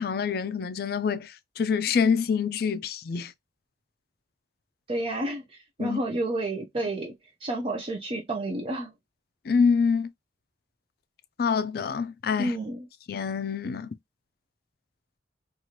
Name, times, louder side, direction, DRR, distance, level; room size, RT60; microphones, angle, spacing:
voice 1, 0.0-3.3 5.8-6.0 9.5-10.1 11.4-12.6 13.1-13.9, left 6 dB, 55° left, 0.4 m, -26 dB
voice 2, 4.9-7.1 7.4-8.9 12.4-12.9, right 1 dB, 30° right, 0.5 m, -30 dB
3.1 x 2.4 x 2.8 m
head